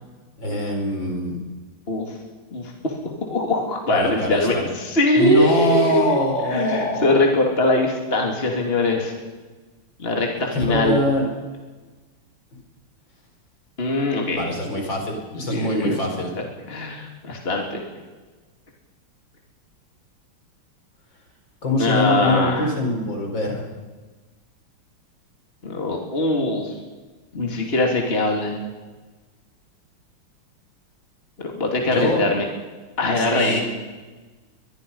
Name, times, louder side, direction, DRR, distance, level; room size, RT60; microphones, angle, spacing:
voice 1, 0.4-1.3 3.9-4.6 5.2-7.2 10.5-11.2 14.3-16.3 21.6-23.7 31.9-32.2 33.2-33.6, equal, 60° left, 2 dB, 5.3 m, -23 dB
voice 2, 2.5-3.0 3.3-6.2 6.5-9.1 10.0-11.0 13.8-14.4 15.5-16.0 16.7-17.8 21.8-22.7 25.6-26.8 27.3-28.6 31.4-32.5 33.0-33.6, left 2 dB, 25° left, 1 dB, 3.0 m, -22 dB
22.5 x 22.5 x 5.6 m, 1.3 s
omnidirectional pair, 2.3 m